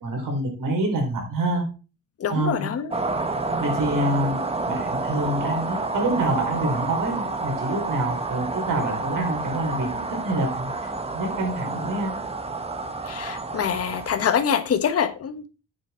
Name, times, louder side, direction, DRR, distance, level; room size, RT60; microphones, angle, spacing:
voice 1, 0.0-1.6 2.3-2.7 3.6-12.2, right 1 dB, 75° right, 4.4 m, -27 dB
voice 2, 2.2-3.0 13.0-15.5, left 8 dB, 45° left, 1.2 m, -25 dB
sound 1, 2.9-14.4, right 3 dB, 20° right, 1.2 m, -29 dB
9.1 x 7.3 x 4.4 m
wide cardioid pair, 155°, 32 cm